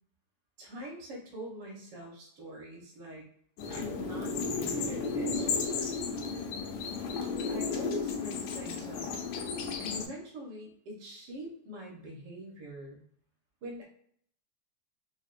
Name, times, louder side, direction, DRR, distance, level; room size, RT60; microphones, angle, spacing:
voice 1, 0.6-3.2 3.7-5.9 7.5-9.1 9.8-13.0 13.6-13.8, equal, 75° right, -2 dB, 1.0 m, -43 dB
sound 1, 3.6-10.1, left 4 dB, 85° left, 2.0 m, -33 dB
5.9 x 2.1 x 2.5 m, 0.62 s
omnidirectional pair, 3.4 m